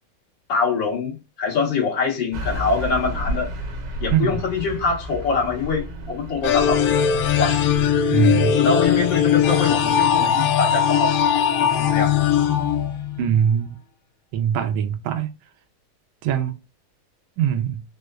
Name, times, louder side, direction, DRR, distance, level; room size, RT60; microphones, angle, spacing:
voice 1, 0.5-3.5 4.0-7.6 8.5-11.2 11.5-12.1, left 4 dB, 60° left, 2.0 m, -24 dB
Car passing by / Truck, 2.3-7.9, equal, 60° right, 1.6 m, -32 dB
sound 1, 6.4-13.4, left 9 dB, 80° left, 1.4 m, -20 dB
voice 2, 8.1-8.5 13.2-13.8 14.3-15.3 16.2-16.5 17.4-17.8, right 9 dB, 80° right, 1.3 m, -21 dB
4.3 x 2.1 x 2.3 m
omnidirectional pair, 2.3 m